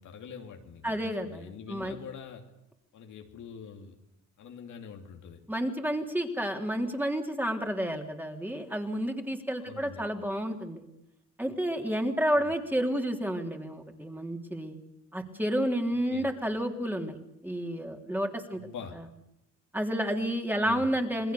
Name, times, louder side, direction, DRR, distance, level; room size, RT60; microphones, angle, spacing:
voice 1, 0.0-2.5 2.9-4.0 4.4-5.4 9.6-10.1 12.4-12.5 15.8-16.3 18.5-19.0 20.5-20.9, left 6 dB, 75° left, 4 dB, 2.9 m, -45 dB
voice 2, 0.8-2.0 5.5-10.8 11.4-14.8 15.1-17.2 17.4-18.6 19.7-21.3, equal, 5° right, 3 dB, 3.4 m, -30 dB
28.0 x 20.5 x 7.0 m, 0.80 s
cardioid pair, 90°, 30 cm